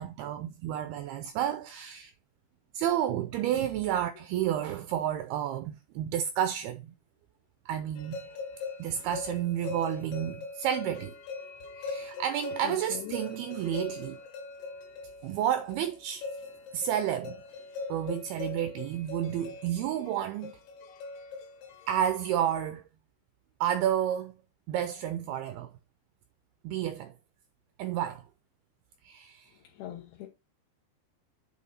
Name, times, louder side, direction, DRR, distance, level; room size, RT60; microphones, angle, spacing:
voice 1, 0.0-2.1 2.7-6.9 7.7-8.3 8.8-11.1 11.8-14.2 15.2-16.2 16.7-17.4 17.9-20.5 21.9-22.8 23.6-24.3 24.7-25.7 26.6-27.1 27.8-28.2 29.0-29.5, right 10 dB, 85° right, 2.2 m, -31 dB
sound 1, 8.0-22.5, left 4 dB, 85° left, 3.9 m, -41 dB
voice 2, 12.6-13.1 13.7-13.8 18.4-18.6 29.7-30.3, left 12 dB, 70° left, 2.7 m, -42 dB
8.6 x 4.7 x 4.2 m
omnidirectional pair, 5.2 m